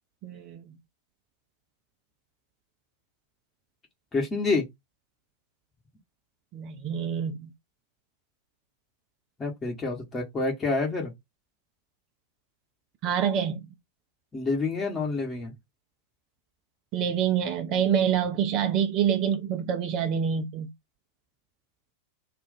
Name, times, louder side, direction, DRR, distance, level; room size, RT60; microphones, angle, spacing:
voice 1, 0.2-0.8 6.5-7.5 13.0-13.6 16.9-20.7, right 8 dB, 40° right, 0.6 m, -26 dB
voice 2, 4.1-4.7 9.4-11.1 14.3-15.5, left 3 dB, 15° left, 1.1 m, -28 dB
2.4 x 2.4 x 3.9 m
figure-of-eight pair, 90°, 0 cm